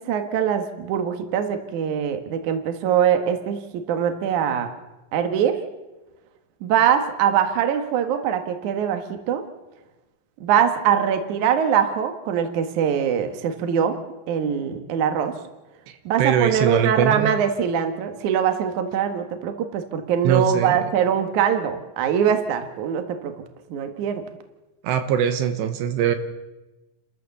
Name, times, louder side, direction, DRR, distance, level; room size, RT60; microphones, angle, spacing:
voice 1, 0.0-4.7 5.1-5.6 6.6-9.4 10.4-14.0 14.3-15.3 16.1-23.3 23.7-24.2, right 8 dB, 55° right, 7 dB, 2.5 m, -22 dB
voice 2, 15.9-17.3 20.2-20.8 24.8-26.2, right 8 dB, 80° right, 8 dB, 3.2 m, -22 dB
30.0 x 13.5 x 7.0 m, 1.1 s
omnidirectional pair, 5.0 m